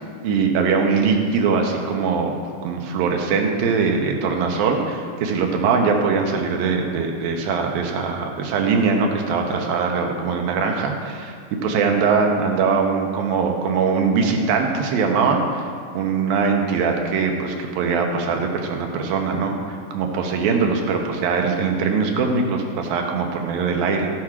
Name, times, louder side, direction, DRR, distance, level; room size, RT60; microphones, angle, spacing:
voice 1, 0.2-2.3 2.6-11.3 11.6-24.1, right 5 dB, 80° right, 2 dB, 2.9 m, -21 dB
15.5 x 6.0 x 4.9 m, 2.2 s
omnidirectional pair, 4.2 m